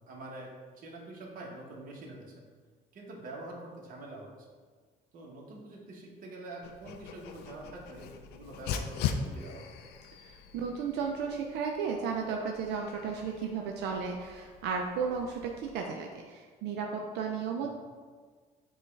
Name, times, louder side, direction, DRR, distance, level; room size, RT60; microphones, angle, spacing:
voice 1, 0.1-2.5 2.9-4.3 5.1-9.8 17.6-17.7, right 2 dB, 55° right, -2 dB, 1.1 m, -45 dB
Dog, 6.6-15.7, left 7 dB, 75° left, 0.4 m, -41 dB
voice 2, 10.2-17.7, right 5 dB, 80° right, 1 dB, 0.4 m, -34 dB
6.4 x 2.3 x 3.2 m, 1.5 s
cardioid pair, 110°, 17 cm